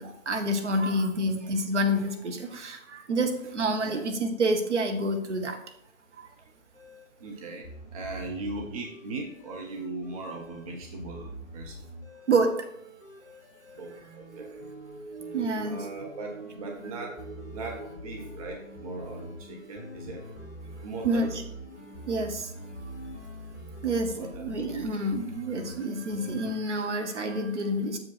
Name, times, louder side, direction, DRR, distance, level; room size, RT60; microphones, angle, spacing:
voice 1, 0.0-5.6 12.3-12.5 15.3-15.8 21.0-21.3 22.1-22.5 23.8-28.0, right 1 dB, 60° right, 5 dB, 1.3 m, -28 dB
sound 1, 6.7-26.5, equal, 10° left, 2.3 m, -45 dB
voice 2, 7.2-7.7 7.9-11.8 13.8-14.7 15.6-17.2 17.5-20.2 20.8-21.3 24.2-24.7, right 2 dB, 25° right, 1 dB, 0.8 m, -39 dB
sound 2, 14.2-24.8 25.2-25.3, right 4 dB, 75° right, 1.4 m, -46 dB
7.3 x 5.1 x 4.2 m, 0.74 s
figure-of-eight pair, 140°, 40 cm